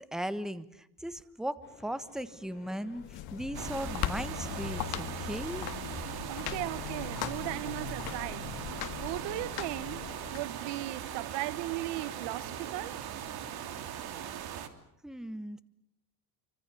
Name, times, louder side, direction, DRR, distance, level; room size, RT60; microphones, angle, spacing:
voice 1, 0.0-5.7 15.0-15.6, equal, ahead, 1.3 m, -37 dB
sound 1, 1.6-13.0, left 5 dB, 25° left, 7.0 m, -55 dB
sound 2, 2.9-10.4, left 11 dB, 60° left, 1.6 m, -39 dB
sound 3, 3.5-14.7, right 9 dB, 60° right, 3.0 m, -40 dB
voice 2, 6.3-8.4 9.0-10.0 10.3-13.0, right 18 dB, 75° right, 1.1 m, -37 dB
28.5 x 25.5 x 7.0 m
cardioid pair, 130°, 42 cm